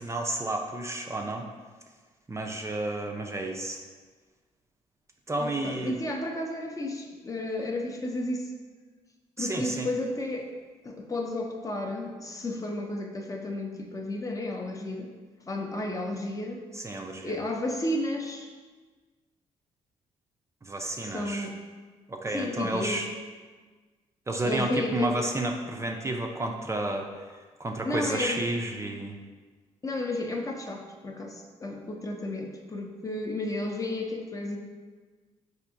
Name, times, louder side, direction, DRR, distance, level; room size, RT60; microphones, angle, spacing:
voice 1, 0.0-1.5 2.3-3.8 5.3-5.9 9.4-9.9 16.7-17.3 20.6-21.5 22.1-23.1 24.3-27.1 27.6-29.2, right 1 dB, 20° right, 2 dB, 0.4 m, -31 dB
voice 2, 5.4-8.5 9.4-10.5 10.8-15.1 15.5-16.6 17.2-18.5 21.0-21.6 22.3-23.0 24.4-25.1 27.8-28.5 29.8-34.6, left 1 dB, 25° left, 2 dB, 0.5 m, -32 dB
4.4 x 2.7 x 2.6 m, 1.4 s
supercardioid pair, 55°, 13 cm